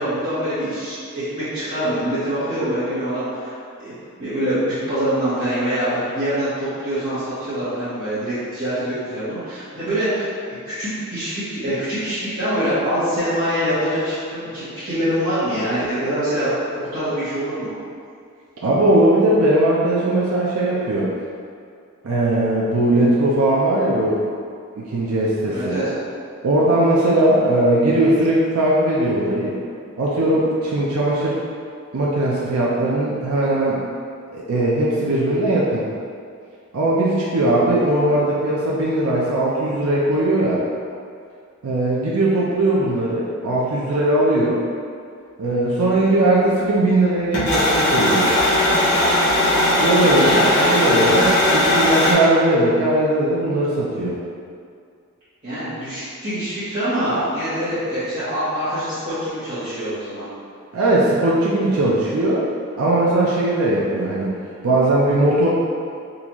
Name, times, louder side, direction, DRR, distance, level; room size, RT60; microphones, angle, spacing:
voice 1, 0.0-3.9 4.2-10.3 10.6-17.7 25.5-25.9 45.9-46.0 50.1-50.7 55.4-60.3, equal, 40° right, -17 dB, 1.1 m, -24 dB
voice 2, 18.6-21.1 22.0-24.2 24.8-25.8 26.4-29.6 30.0-31.4 31.9-33.8 34.3-35.9 36.7-40.7 41.6-44.6 45.4-48.4 49.8-54.2 60.7-62.5 62.8-64.3 64.6-65.5, right 1 dB, 75° right, -6 dB, 0.5 m, -19 dB
sound 1, 47.3-52.1, left 1 dB, 55° left, 1.1 m, -18 dB
3.8 x 2.4 x 2.9 m, 2.3 s
head